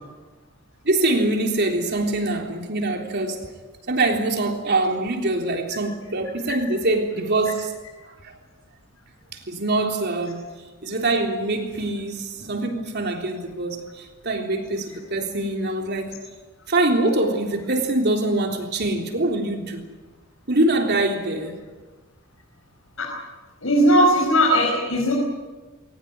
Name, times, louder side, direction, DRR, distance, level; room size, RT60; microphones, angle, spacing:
voice 1, 0.8-3.5 3.9-7.7 8.2-8.3 9.3-10.5 10.8-16.2 16.7-19.8 20.5-21.6, right 2 dB, 55° right, 3.6 m, -24 dB
voice 2, 23.6-25.1, equal, 80° left, 5.3 m, -18 dB
22.0 x 19.5 x 9.5 m
head